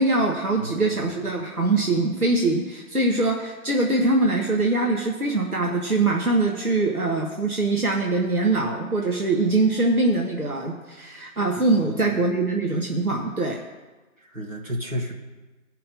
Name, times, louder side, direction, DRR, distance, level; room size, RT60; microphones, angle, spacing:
voice 1, 0.0-13.6, right 2 dB, 80° right, 0 dB, 1.7 m, -23 dB
voice 2, 0.6-1.2 11.8-12.2 14.2-15.1, equal, 60° right, -1 dB, 2.4 m, -33 dB
17.0 x 5.7 x 5.4 m, 1.2 s
figure-of-eight pair, 180°, 43 cm